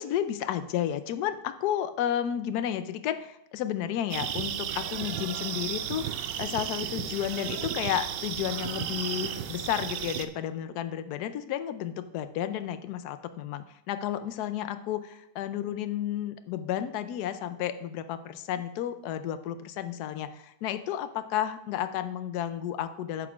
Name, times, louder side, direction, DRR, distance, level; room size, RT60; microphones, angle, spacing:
voice 1, 0.0-23.3, left 10 dB, 70° left, 11 dB, 1.1 m, -32 dB
sound 1, 4.1-10.2, right 9 dB, 85° right, 1.2 m, -34 dB
9.2 x 3.7 x 7.0 m, 0.80 s
omnidirectional pair, 1.8 m